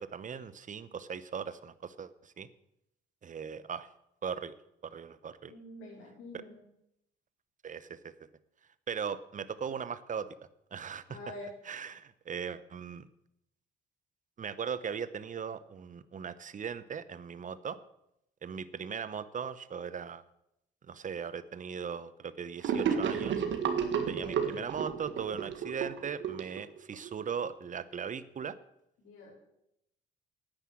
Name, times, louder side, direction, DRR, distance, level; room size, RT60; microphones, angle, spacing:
voice 1, 0.0-2.5 3.2-3.9 4.2-4.5 4.8-5.5 7.6-8.1 8.9-10.3 10.7-11.2 11.7-13.1 14.4-17.8 18.4-20.2 20.9-23.4 24.1-28.6, right 7 dB, 40° right, 15 dB, 0.8 m, -38 dB
voice 2, 5.5-6.6 11.1-11.5 24.1-24.5 29.0-29.3, left 2 dB, 90° left, -7 dB, 4.7 m, -46 dB
Gurgling / Sink (filling or washing), 22.6-27.1, right 7 dB, 70° right, 1.8 m, -32 dB
10.0 x 9.3 x 7.6 m, 0.81 s
cardioid pair, 90°, 20 cm